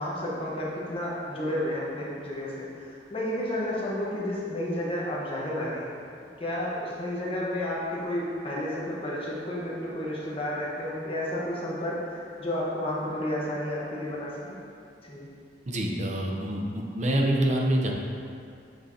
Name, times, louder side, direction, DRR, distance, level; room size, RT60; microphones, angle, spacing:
voice 1, 0.0-6.0 6.4-14.6 15.0-15.3, left 1 dB, 35° left, -5 dB, 1.1 m, -31 dB
voice 2, 15.7-17.9, right 1 dB, 40° right, 0 dB, 0.7 m, -26 dB
7.7 x 4.6 x 2.8 m, 2.4 s
head